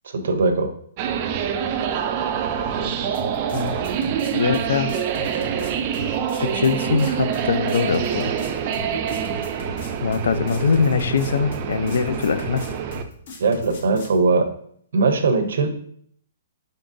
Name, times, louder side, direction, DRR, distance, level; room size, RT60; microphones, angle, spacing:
voice 1, 0.0-0.7 13.4-14.5 14.9-15.7, right 4 dB, 75° right, 7 dB, 0.6 m, -20 dB
sound 1, 1.0-13.0, right 8 dB, 35° right, 0.3 m, -26 dB
voice 2, 2.8-3.1 3.5-3.7 4.3-4.9 6.4-8.3 10.0-12.6, left 5 dB, 75° left, 12 dB, 0.4 m, -22 dB
sound 2, 3.1-14.2, left 2 dB, 55° left, 0.9 m, -37 dB
3.9 x 3.6 x 2.6 m, 0.64 s
hypercardioid pair, 160°, 0 cm